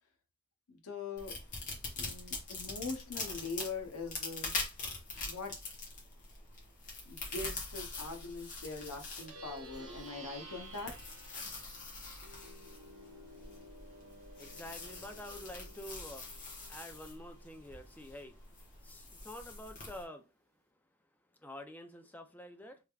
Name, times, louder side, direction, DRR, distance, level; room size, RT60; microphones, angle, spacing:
voice 1, 0.7-1.4 2.0-4.5 5.2-5.5 7.1-10.9, left 3 dB, 80° left, 4 dB, 0.8 m, -42 dB
sound 1, 1.2-20.0, left 3 dB, 35° left, 1.1 m, -44 dB
Plucked string instrument, 9.1-18.8, right 1 dB, 60° right, 1.1 m, -54 dB
voice 2, 14.4-16.3 16.7-18.4 18.8-20.3 21.4-22.8, left 1 dB, 10° left, 5 dB, 0.4 m, -48 dB
3.3 x 3.3 x 2.3 m, 0.27 s
head